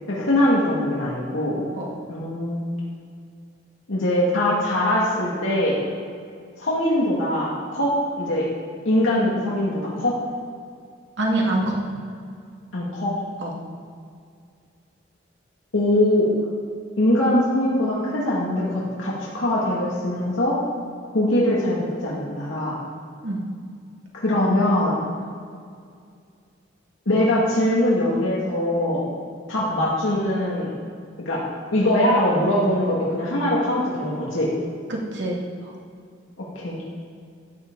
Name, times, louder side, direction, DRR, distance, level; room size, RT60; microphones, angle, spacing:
voice 1, 0.1-1.6 2.1-2.6 3.9-5.8 6.6-8.5 8.8-10.1 12.7-13.1 15.7-16.3 17.0-20.6 21.1-22.8 24.2-25.0 27.1-29.0 29.5-30.7 31.3-31.4 31.7-34.5 36.6-36.8, left 1 dB, 90° left, -6 dB, 2.3 m, -22 dB
voice 2, 11.2-11.8 13.4-13.5 23.2-23.4 34.9-35.7, right 1 dB, 65° right, -2 dB, 2.2 m, -25 dB
13.5 x 9.6 x 4.0 m, 2.2 s
head